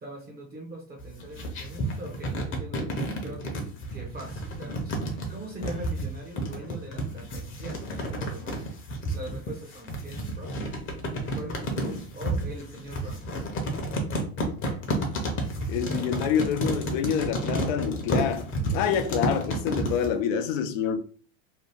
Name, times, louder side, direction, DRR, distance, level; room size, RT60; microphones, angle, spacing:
voice 1, 0.0-3.7 3.9-8.6 9.1-10.8 11.3-13.4 18.7-18.9, right 1 dB, 20° right, 0.7 m, -42 dB
sound 1, 1.0-20.1, right 1 dB, 30° left, 0.8 m, -31 dB
voice 2, 15.7-21.0, left 8 dB, 65° left, 0.6 m, -27 dB
2.8 x 2.0 x 3.4 m
supercardioid pair, 115°, 42 cm